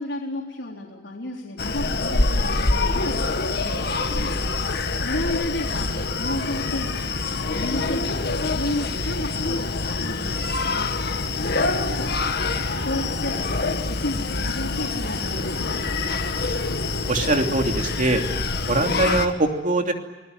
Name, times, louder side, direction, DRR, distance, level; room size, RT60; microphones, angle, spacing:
voice 1, 0.0-4.3 5.0-7.0 7.4-9.7 10.0-12.5 12.8-15.8, left 1 dB, 85° left, -2 dB, 3.9 m, -33 dB
Screaming, 1.6-19.3, left 3 dB, 60° left, 1.9 m, -25 dB
voice 2, 17.1-18.2 18.7-19.9, right 2 dB, 45° right, 4 dB, 3.0 m, -22 dB
26.5 x 20.5 x 9.4 m, 1.2 s
head